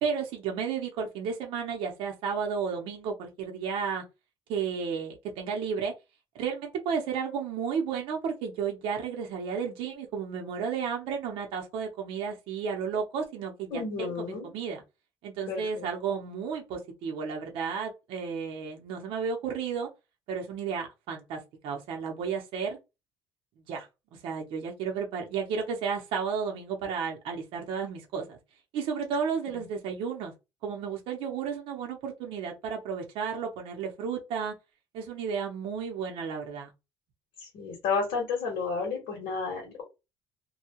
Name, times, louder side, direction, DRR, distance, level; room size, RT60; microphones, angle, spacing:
voice 1, 0.0-4.0 4.5-5.9 6.3-13.8 14.5-14.8 15.2-19.9 20.3-22.8 23.7-23.9 24.2-28.4 28.7-30.3 30.6-34.5 34.9-36.7, right 6 dB, 70° right, 0.8 m, -32 dB
voice 2, 13.7-14.5 15.5-15.9 29.5-29.6 37.4-39.8, left 5 dB, 70° left, 1.4 m, -32 dB
2.7 x 2.3 x 2.9 m
cardioid pair, 170°, 9 cm